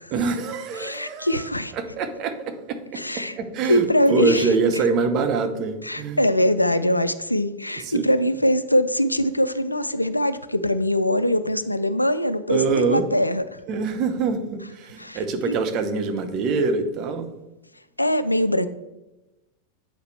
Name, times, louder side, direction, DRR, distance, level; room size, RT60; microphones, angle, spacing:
voice 1, 0.1-1.5 1.7-2.9 3.1-6.2 7.7-8.1 12.5-13.1 13.7-17.3, right 4 dB, 40° right, 7 dB, 0.8 m, -25 dB
voice 2, 0.8-1.7 2.9-3.4 3.7-4.5 5.8-13.6 15.0-15.2 15.5-15.6 18.0-18.7, equal, 85° left, 13 dB, 0.3 m, -22 dB
8.1 x 4.8 x 3.2 m, 1.0 s
figure-of-eight pair, 90°, 0 cm